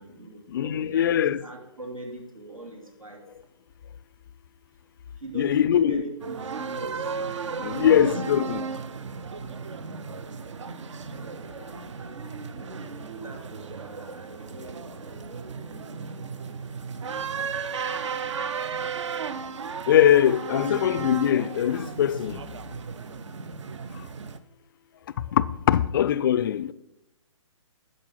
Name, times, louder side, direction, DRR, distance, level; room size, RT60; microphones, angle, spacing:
voice 1, 0.0-3.3 5.2-7.1 7.7-8.5 9.7-10.1 11.1-16.5, right 3 dB, 85° right, 2.5 m, -41 dB
voice 2, 0.5-1.4 5.3-6.0 7.6-8.6 19.9-22.4 25.3-26.7, left 10 dB, 40° left, 0.4 m, -22 dB
sound 1, 6.2-24.4, right 5 dB, 60° right, 0.7 m, -35 dB
10.5 x 6.9 x 5.7 m
figure-of-eight pair, 135°, 17 cm